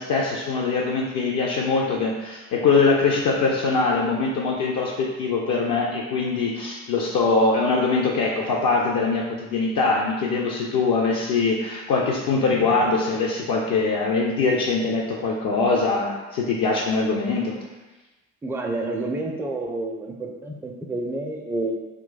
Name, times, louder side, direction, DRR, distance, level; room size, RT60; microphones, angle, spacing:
voice 1, 0.0-17.5, left 4 dB, 55° left, -2 dB, 0.5 m, -22 dB
voice 2, 18.4-21.7, right 2 dB, 5° right, 1 dB, 0.4 m, -29 dB
2.2 x 2.2 x 3.9 m, 1.1 s
figure-of-eight pair, 40°, 41 cm